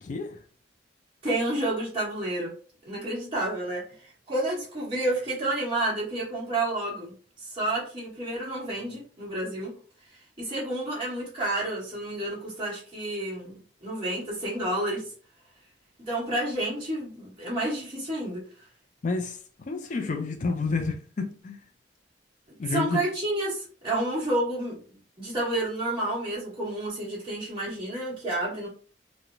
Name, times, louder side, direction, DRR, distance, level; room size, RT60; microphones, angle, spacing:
voice 1, 0.0-0.4 19.0-19.4 19.7-21.6 22.6-23.0, left 3 dB, 40° left, 0.4 m, -29 dB
voice 2, 1.2-2.5 2.8-7.1 7.4-9.7 10.1-15.1 16.0-18.4 22.7-28.7, right 1 dB, 30° right, 1.4 m, -30 dB
3.0 x 2.1 x 2.5 m
head